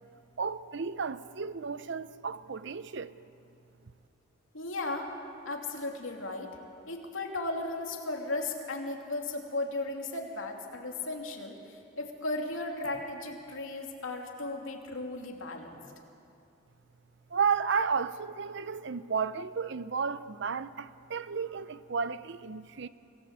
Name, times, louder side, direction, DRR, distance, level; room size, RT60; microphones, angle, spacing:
voice 1, 0.4-3.2 17.3-22.9, right 6 dB, 60° right, 0.7 m, -32 dB
voice 2, 4.5-5.1 5.4-6.5 6.9-15.8, left 2 dB, 75° left, 2.8 m, -36 dB
25.5 x 17.5 x 8.2 m
head